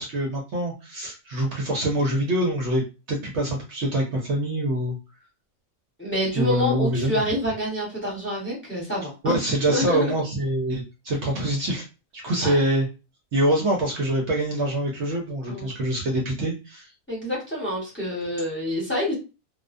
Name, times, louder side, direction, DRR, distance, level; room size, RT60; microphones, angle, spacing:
voice 1, 0.0-2.8 3.1-5.0 6.3-7.2 9.2-11.8 12.1-12.9 13.3-16.9, right 1 dB, 65° right, 0 dB, 0.9 m, -25 dB
voice 2, 6.0-9.4 9.7-10.0 12.4-12.5 15.5-15.7 17.1-19.1, equal, 10° left, -4 dB, 1.0 m, -27 dB
2.4 x 2.1 x 2.5 m, 0.29 s
omnidirectional pair, 1.4 m